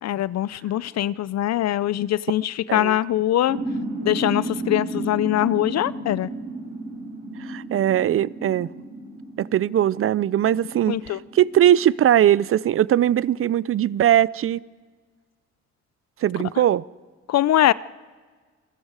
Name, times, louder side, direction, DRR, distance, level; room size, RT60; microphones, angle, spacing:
voice 1, 0.0-3.6 4.0-6.3 10.9-11.2 17.3-17.7, left 13 dB, 60° left, 19 dB, 0.6 m, -22 dB
sound 1, 3.5-12.7, right 2 dB, 90° right, 5.1 m, -33 dB
voice 2, 7.4-8.7 9.4-14.6 16.2-16.8, right 11 dB, 45° right, 21 dB, 0.5 m, -20 dB
28.5 x 20.5 x 4.8 m, 1.5 s
cardioid pair, 90°, 30 cm